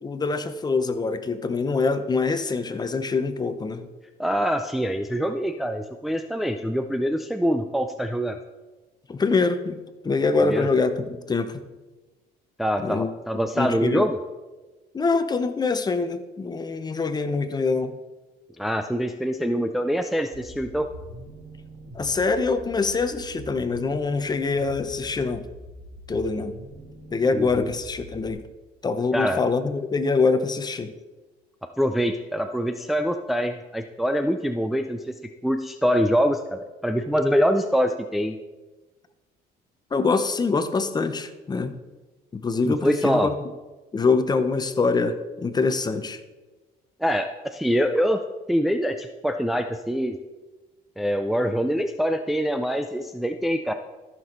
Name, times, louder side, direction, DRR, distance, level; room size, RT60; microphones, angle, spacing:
voice 1, 0.0-3.9 9.1-9.8 10.0-11.6 12.8-13.1 13.6-14.1 14.9-18.0 21.9-25.5 26.1-26.5 27.1-28.4 28.8-30.9 39.9-41.7 42.3-43.3 43.9-46.2, left 4 dB, 25° left, 10 dB, 0.8 m, -24 dB
voice 2, 4.2-8.4 10.4-10.7 12.6-14.2 18.6-20.9 27.3-27.7 29.1-29.4 31.6-35.2 35.4-38.4 42.6-43.3 47.0-48.2 48.5-50.2 51.0-53.7, equal, ahead, 6 dB, 0.4 m, -24 dB
sound 1, 20.3-28.3, right 1 dB, 25° right, 2.5 m, -43 dB
14.0 x 6.2 x 3.9 m, 1.2 s
cardioid pair, 110°, 17 cm